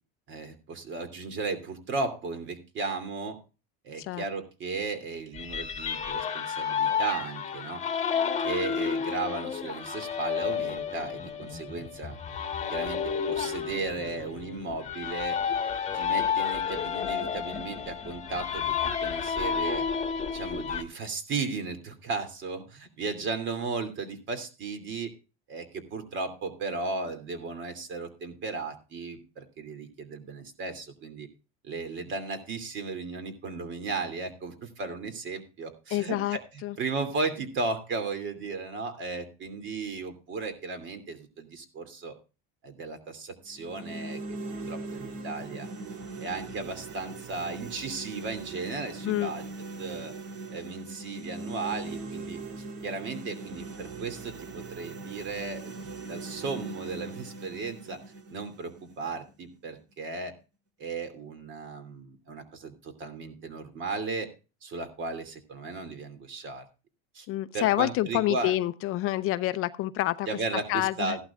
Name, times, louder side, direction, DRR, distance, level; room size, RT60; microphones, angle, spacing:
voice 1, 0.3-3.4 3.8-7.8 8.4-12.2 12.7-13.0 13.3-15.4 15.9-19.8 20.3-25.1 25.5-31.3 31.6-36.4 36.8-42.1 42.6-44.2 44.7-45.7 46.2-49.4 49.8-50.1 50.5-58.0 58.3-60.3 60.8-64.3 64.6-66.6 67.1-67.3 67.5-68.5 70.3-71.2, right 4 dB, 40° right, 2.7 m, -35 dB
sound 1, 5.3-20.8, left 7 dB, 25° left, 1.4 m, -31 dB
voice 2, 35.9-36.8 49.0-49.3 67.3-70.3 70.7-71.2, left 15 dB, 50° left, 0.6 m, -28 dB
sound 2, 43.5-59.5, right 3 dB, 65° right, 2.8 m, -40 dB
15.5 x 11.5 x 2.4 m
supercardioid pair, 130°, 29 cm